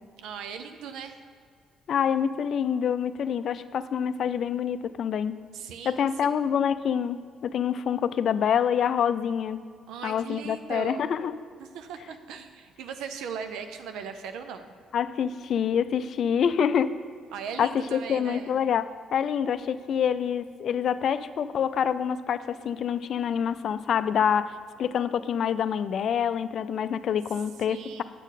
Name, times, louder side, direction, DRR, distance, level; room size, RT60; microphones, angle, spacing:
voice 1, 0.2-1.2 5.5-6.1 9.9-11.1 11.6-14.7 17.3-18.5 27.7-28.0, right 6 dB, 85° right, 8 dB, 0.5 m, -38 dB
voice 2, 1.9-5.4 5.9-9.6 10.0-11.3 14.9-16.9 17.6-18.8 19.1-24.5 24.8-28.0, left 8 dB, 60° left, 13 dB, 0.3 m, -26 dB
8.1 x 6.2 x 4.1 m, 2.1 s
cardioid pair, 90°, 0 cm